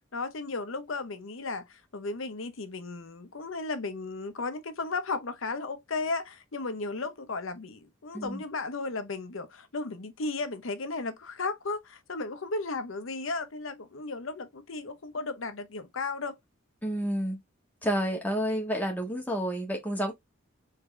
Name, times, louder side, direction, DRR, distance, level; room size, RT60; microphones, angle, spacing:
voice 1, 0.1-16.4, left 3 dB, 70° left, 0.8 m, -35 dB
voice 2, 16.8-17.4 17.8-20.1, equal, 10° left, 1.4 m, -30 dB
3.8 x 3.7 x 3.2 m
head